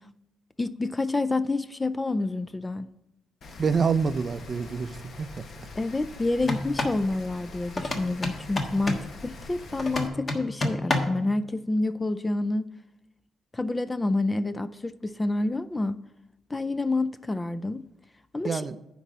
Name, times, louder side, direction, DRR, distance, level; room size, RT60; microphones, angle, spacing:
voice 1, 0.6-2.9 5.8-12.7 13.5-16.0 16.5-17.8 18.3-18.6, left 2 dB, 20° left, 0.4 m, -28 dB
Rain, 3.4-10.1, left 2 dB, 55° left, 1.2 m, -44 dB
voice 2, 3.6-5.4 18.4-18.8, right 5 dB, 40° right, 0.5 m, -27 dB
sound 1, 6.4-7.0 7.8-9.1 9.8-11.2, left 2 dB, 35° left, 1.4 m, -29 dB
9.7 x 4.0 x 7.3 m
cardioid pair, 90°, 0 cm